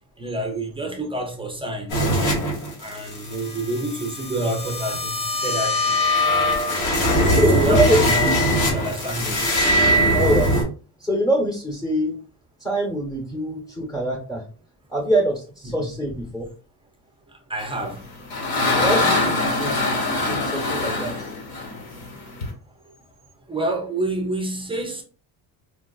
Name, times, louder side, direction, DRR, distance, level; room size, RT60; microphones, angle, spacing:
voice 1, 0.2-2.0 2.8-6.0 6.7-9.5 15.7-15.9 17.5-18.0 23.5-25.0, right 1 dB, 15° right, 0.4 m, -28 dB
sound 1, 1.9-10.6, equal, 85° left, 1.7 m, -21 dB
voice 2, 7.3-8.0 10.1-10.6 11.0-12.1 12.6-14.4 14.9-16.5 18.7-21.3, right 1 dB, 5° left, 0.9 m, -24 dB
sound 2, 17.8-22.5, left 2 dB, 60° left, 1.3 m, -23 dB
4.5 x 2.3 x 2.3 m
cardioid pair, 135°, 43 cm